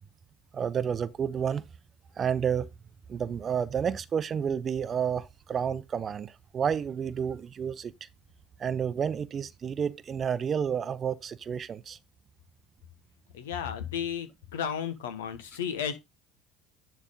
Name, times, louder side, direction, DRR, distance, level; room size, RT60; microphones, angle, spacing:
voice 1, 0.5-1.6 2.2-2.7 3.1-8.1 8.6-12.0, right 7 dB, 35° right, 0.7 m, -30 dB
voice 2, 13.3-16.0, left 8 dB, 75° left, 1.3 m, -33 dB
10.5 x 3.5 x 5.5 m
hypercardioid pair, 65°, 0 cm